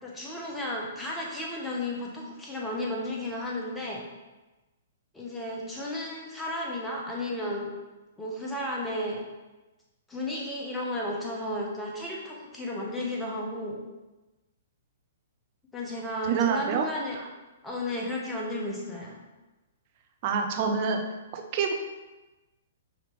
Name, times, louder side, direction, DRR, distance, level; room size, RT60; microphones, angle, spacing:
voice 1, 0.0-4.0 5.1-7.7 8.2-9.2 10.1-13.8 15.7-17.2 17.6-19.2, left 1 dB, 10° left, -3 dB, 1.0 m, -33 dB
voice 2, 16.3-16.9 17.2-17.3 20.2-21.0 21.3-21.7, right 6 dB, 45° right, 4 dB, 0.6 m, -26 dB
5.1 x 2.9 x 3.4 m, 1.1 s
hypercardioid pair, 130°, 0 cm